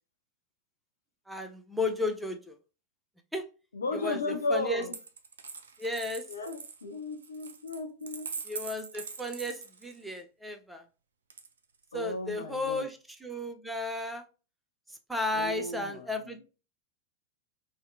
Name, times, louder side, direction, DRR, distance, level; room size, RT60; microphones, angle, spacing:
voice 1, 1.3-2.6 3.3-3.5 3.9-4.2 4.5-4.8 5.8-6.2 8.5-10.8 11.9-14.2 14.9-16.4, left 2 dB, 5° right, 6 dB, 0.4 m, -34 dB
voice 2, 3.7-4.9 6.3-8.3 11.9-12.9 15.3-16.4, left 3 dB, 70° left, 4 dB, 0.4 m, -35 dB
Coin (dropping), 4.8-10.2 11.3-12.0, right 5 dB, 65° right, 0.3 m, -43 dB
2.7 x 2.1 x 2.5 m, 0.33 s
figure-of-eight pair, 90°, 0 cm